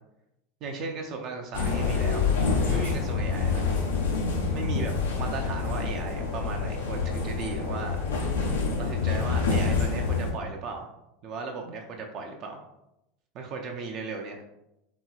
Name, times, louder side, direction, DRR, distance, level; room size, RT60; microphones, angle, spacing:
voice 1, 0.6-2.2 2.6-3.7 4.5-4.9 5.2-8.0 8.8-10.9 11.2-12.6 13.3-14.4, right 4 dB, 50° right, 2 dB, 0.4 m, -36 dB
sound 1, 1.5-10.3, left 4 dB, 80° left, 0.6 m, -27 dB
2.8 x 2.8 x 2.3 m, 0.87 s
hypercardioid pair, 85°, 0 cm